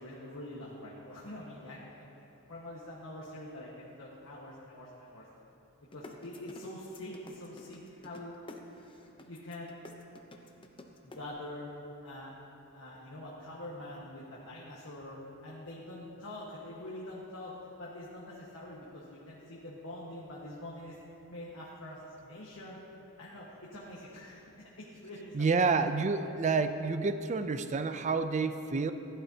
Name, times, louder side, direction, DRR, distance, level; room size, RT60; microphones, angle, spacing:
voice 1, 0.0-5.2 5.9-8.3 9.2-9.8 11.0-11.7 12.0-12.3 12.7-20.9 21.3-22.8 23.2-23.5 23.7-24.5 24.8-25.6, left 1 dB, 60° left, -6 dB, 1.4 m, -45 dB
sound 1, 5.9-11.2, left 2 dB, 25° left, 0.7 m, -49 dB
voice 2, 25.3-28.9, right 4 dB, 30° right, 10 dB, 0.4 m, -29 dB
15.5 x 11.0 x 2.8 m, 2.9 s
head